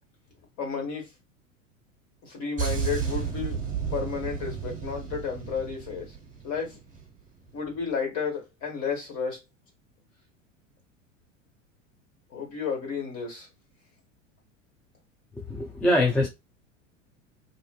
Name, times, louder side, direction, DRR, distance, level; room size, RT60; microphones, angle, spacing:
voice 1, 0.6-1.1 2.2-3.6 3.9-6.2 6.4-6.8 7.5-9.4 12.3-13.5, left 6 dB, 45° left, 1.6 m, -32 dB
sound 1, 2.6-7.1 7.4-7.7, right 7 dB, 20° right, 0.9 m, -33 dB
voice 2, 15.4-16.3, left 1 dB, 5° left, 0.3 m, -23 dB
2.5 x 2.5 x 2.3 m
figure-of-eight pair, 80°, 39 cm